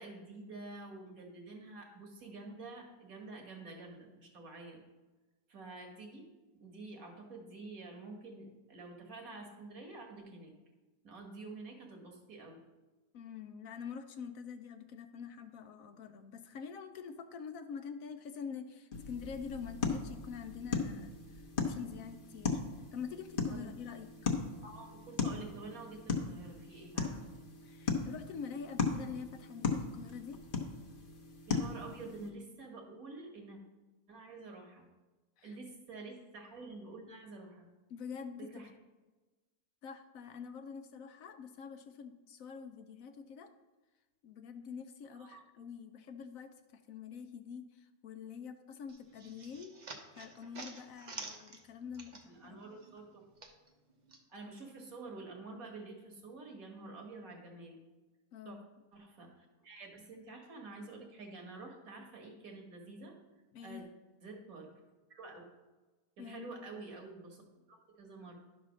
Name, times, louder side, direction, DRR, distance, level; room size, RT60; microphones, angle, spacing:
voice 1, 0.0-4.8 5.5-6.3 6.6-10.5 11.0-12.6 23.5-23.7 24.6-27.3 31.5-33.6 34.1-34.9 35.4-37.7 38.4-38.7 45.1-45.4 52.3-53.2 54.3-57.8 58.5-58.6 58.9-63.2 63.6-63.8 64.2-64.7 65.1-65.4 66.2-67.4 67.7-68.4, right 3 dB, 70° right, 1 dB, 1.9 m, -48 dB
voice 2, 13.1-22.6 22.9-24.3 27.6-30.4 35.4-35.6 37.9-38.7 39.8-43.5 44.2-49.8 50.2-52.7 58.3-58.7 63.5-63.9 66.2-66.5, left 6 dB, 70° left, 8 dB, 1.0 m, -46 dB
sound 1, 18.9-32.3, left 5 dB, 40° left, 1.1 m, -38 dB
sound 2, 48.9-52.5 52.8-54.2, right 3 dB, 35° right, 0.9 m, -49 dB
11.0 x 4.1 x 6.2 m, 1.2 s
omnidirectional pair, 1.6 m